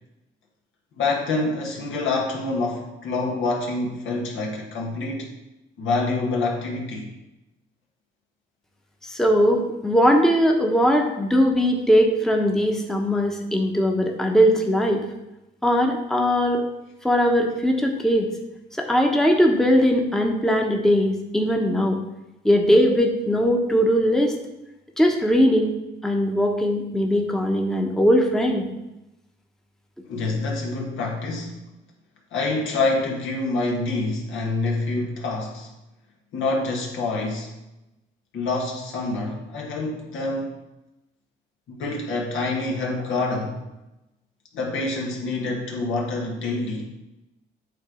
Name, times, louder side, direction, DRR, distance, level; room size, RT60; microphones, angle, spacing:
voice 1, 1.0-5.3 5.8-7.1 30.0-31.6 32.3-35.7 36.3-37.5 38.3-40.5 41.8-43.6 44.5-46.9, left 3 dB, 80° left, -1 dB, 1.7 m, -26 dB
voice 2, 9.1-15.0 15.6-16.6 17.0-18.3 18.8-22.0 22.4-24.3 25.0-25.7 26.0-28.6, equal, ahead, 1 dB, 0.9 m, -20 dB
8.6 x 3.3 x 5.0 m, 0.95 s
cardioid pair, 90°, 20 cm